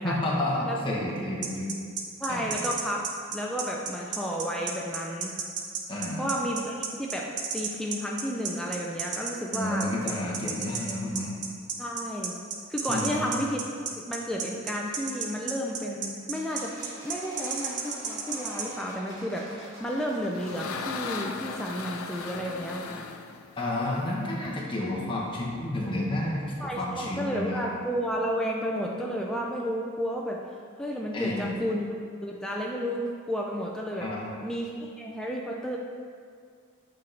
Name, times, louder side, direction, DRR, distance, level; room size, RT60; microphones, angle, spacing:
voice 1, 0.0-1.7 2.3-2.5 5.9-6.2 9.5-11.3 12.9-13.3 23.6-27.7 31.1-31.6 34.0-34.3, left 1 dB, 25° left, -4 dB, 1.0 m, -30 dB
sound 1, 1.4-18.7, right 6 dB, 55° right, 0.6 m, -33 dB
voice 2, 2.2-5.3 6.2-9.9 11.8-12.3 12.7-13.6 14.0-23.1 26.6-30.4 30.8-31.9 32.2-34.1 34.4-35.8, equal, 5° left, -2 dB, 0.3 m, -32 dB
sound 2, 16.3-22.6, left 1 dB, 15° right, 1.2 m, -47 dB
sound 3, 19.9-24.5, left 5 dB, 80° left, 0.4 m, -38 dB
8.6 x 3.8 x 3.3 m, 2.1 s
head